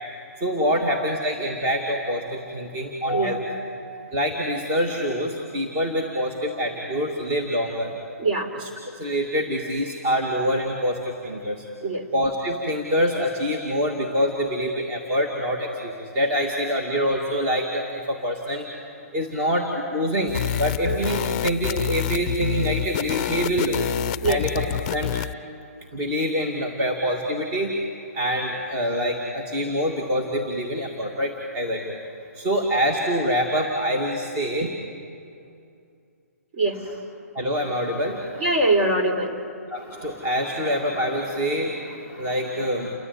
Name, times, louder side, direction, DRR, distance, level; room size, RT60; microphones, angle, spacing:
voice 1, 0.4-3.5 4.1-7.9 8.6-8.7 9.0-11.6 12.1-18.7 19.1-23.9 24.3-24.6 24.9-25.1 25.9-27.7 28.1-31.9 32.4-34.7 37.3-38.4 39.7-42.9, equal, 25° right, 0 dB, 2.3 m, -25 dB
voice 2, 8.2-8.5 11.8-12.1 20.9-21.0 24.2-24.4 36.5-36.8 38.4-39.4, right 2 dB, 45° right, 4 dB, 3.7 m, -22 dB
sound 1, 20.3-25.3, left 11 dB, 35° left, 0.5 m, -27 dB
29.5 x 14.0 x 9.6 m, 2.5 s
hypercardioid pair, 155°, 8 cm